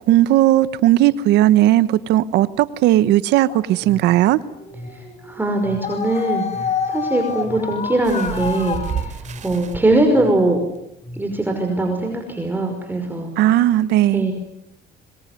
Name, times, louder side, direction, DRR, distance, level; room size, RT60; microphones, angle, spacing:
voice 1, 0.1-4.4 13.4-14.2, right 14 dB, 85° right, 15 dB, 1.1 m, -16 dB
sound 1, 3.4-9.1, left 7 dB, 40° left, 3.9 m, -29 dB
sound 2, 3.8-11.6, left 1 dB, 15° left, 7.0 m, -40 dB
voice 2, 4.9-10.6 11.1-13.3 14.1-14.3, right 2 dB, 10° right, 3 dB, 5.5 m, -21 dB
sound 3, 8.0-9.8 10.7-10.8 11.3-11.4, right 8 dB, 45° right, 3.7 m, -31 dB
26.5 x 23.5 x 9.4 m, 0.80 s
cardioid pair, 110°, 17 cm